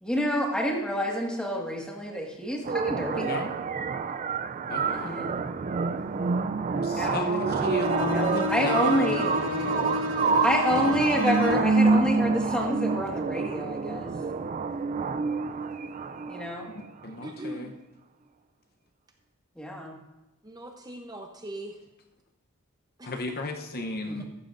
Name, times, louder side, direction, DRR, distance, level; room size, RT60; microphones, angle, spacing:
voice 1, 0.0-3.3 4.9-5.3 7.0-9.2 10.4-14.1 16.3-16.7 19.6-20.0 24.1-24.2, equal, 5° left, -1 dB, 1.7 m, -28 dB
sound 1, 2.7-16.6, right 4 dB, 35° right, 0.3 m, -27 dB
voice 2, 3.1-3.5 4.7-5.2 6.7-10.1 16.7-17.7 23.0-24.2, left 2 dB, 45° left, 4 dB, 0.8 m, -34 dB
Bowed string instrument, 7.8-11.9, left 3 dB, 75° right, 1.7 m, -31 dB
voice 3, 17.2-17.8 20.4-21.8 23.0-23.1, right 1 dB, 20° right, 3 dB, 0.7 m, -39 dB
14.5 x 12.5 x 2.6 m, 0.99 s
head